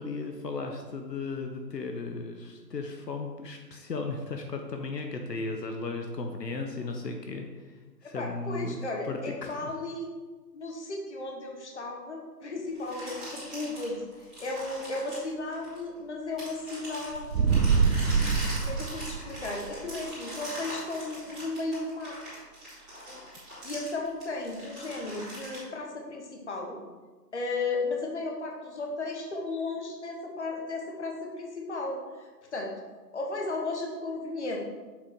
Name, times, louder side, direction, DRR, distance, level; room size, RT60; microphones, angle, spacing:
voice 1, 0.0-8.8 9.0-9.7, left 3 dB, 75° left, 4 dB, 1.0 m, -36 dB
voice 2, 8.0-10.1 10.5-14.0 14.4-17.6 18.4-22.2 23.1-23.2 23.6-26.8 27.3-32.7 33.1-34.6, left 2 dB, 45° left, 0 dB, 1.2 m, -35 dB
sound 1, 12.7-16.0 16.4-25.6, equal, ahead, 1.9 m, -41 dB
sound 2, 17.1-19.6, right 5 dB, 85° right, 0.8 m, -25 dB
7.5 x 3.8 x 4.6 m, 1.3 s
figure-of-eight pair, 165°, 50 cm